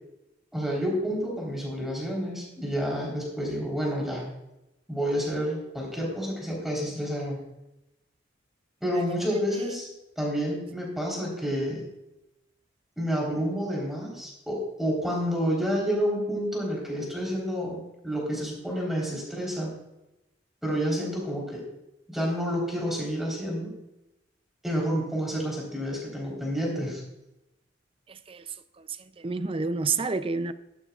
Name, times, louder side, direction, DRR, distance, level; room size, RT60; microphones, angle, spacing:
voice 1, 0.5-4.2 4.9-7.5 8.8-9.9 10.2-11.8 13.0-17.8 18.0-19.7 20.6-21.6 22.1-23.7 24.6-27.0, equal, ahead, 3.8 m, -29 dB
voice 2, 28.1-30.5, right 4 dB, 30° right, 0.5 m, -30 dB
14.0 x 12.0 x 2.4 m
head